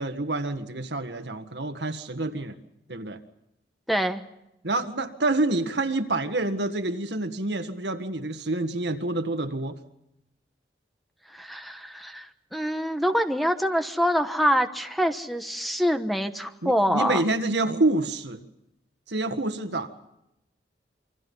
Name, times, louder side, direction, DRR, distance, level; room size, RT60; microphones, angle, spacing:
voice 1, 0.0-2.6 2.9-3.2 4.6-9.8 16.6-18.5 19.1-20.1, right 2 dB, 70° right, 7 dB, 1.8 m, -27 dB
voice 2, 3.9-4.2 11.3-17.2, equal, ahead, 7 dB, 1.1 m, -25 dB
28.0 x 24.5 x 5.5 m, 0.84 s
head